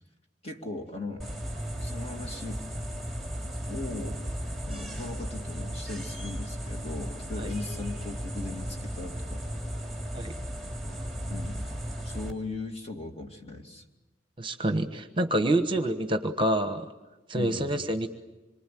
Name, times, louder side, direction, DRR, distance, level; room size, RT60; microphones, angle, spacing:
voice 1, 0.4-1.3 1.8-2.6 3.7-4.2 4.7-9.4 11.3-11.6 12.0-13.8 17.3-17.8, left 3 dB, 30° left, 3 dB, 2.6 m, -38 dB
sound 1, 1.2-12.3, equal, ahead, 3.3 m, -35 dB
voice 2, 14.4-16.9 17.3-18.1, right 1 dB, 25° right, 8 dB, 1.2 m, -27 dB
26.5 x 23.5 x 9.3 m, 1.1 s
head